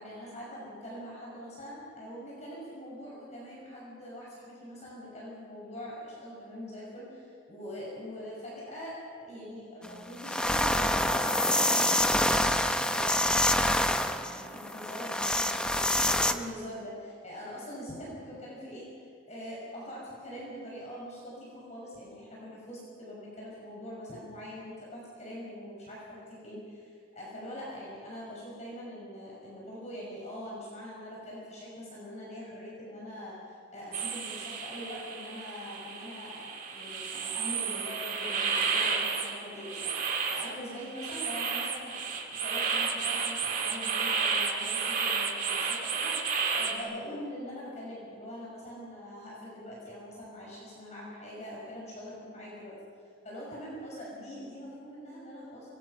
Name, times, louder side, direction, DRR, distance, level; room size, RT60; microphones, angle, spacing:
voice 1, 0.0-12.3 12.8-13.5 13.8-52.7 53.2-55.7, equal, 35° left, -5 dB, 6.2 m, -43 dB
sound 1, 9.8-9.9 10.2-16.3, left 1 dB, 5° left, 0.7 m, -26 dB
sound 2, 33.9-46.8, right 5 dB, 40° right, 2.1 m, -32 dB
24.5 x 21.0 x 5.9 m, 2.1 s
head